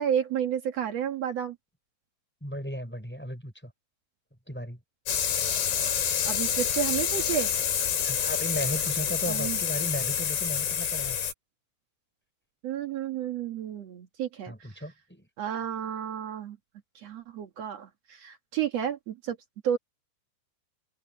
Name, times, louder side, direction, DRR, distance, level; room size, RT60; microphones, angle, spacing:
voice 1, 0.0-1.5 6.2-7.5 9.3-9.6 12.6-14.8 15.4-16.6 16.9-19.4 19.6-19.8, right 9 dB, 90° right, 1.4 m, -31 dB
voice 2, 2.4-3.7 4.5-4.8 8.0-11.2 14.5-15.3, equal, ahead, 5.5 m, -35 dB
sound 1, 5.1-11.3, left 8 dB, 60° left, 5.1 m, -28 dB
open air
omnidirectional pair, 5.5 m